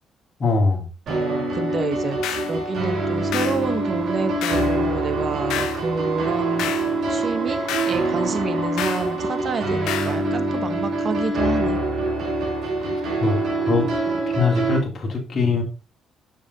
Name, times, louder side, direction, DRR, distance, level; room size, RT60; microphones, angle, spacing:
voice 1, 0.4-0.9 13.2-13.4 13.7-13.8 14.3-15.6, left 4 dB, 45° left, -1 dB, 2.7 m, -21 dB
voice 2, 1.1-6.7 7.1-11.8, right 4 dB, 45° right, 10 dB, 1.2 m, -28 dB
sound 1, 1.1-14.8, right 2 dB, 65° right, 3.9 m, -25 dB
sound 2, 2.2-2.5 3.3-3.6 4.4-4.7 5.5-5.8 6.6-6.9 7.7-8.0 8.8-9.1 9.9-10.2, left 10 dB, 85° left, 0.8 m, -29 dB
sound 3, 3.7-9.7, right 7 dB, 80° right, 1.5 m, -36 dB
7.2 x 6.3 x 4.1 m, 0.33 s
cardioid pair, 90°, 0 cm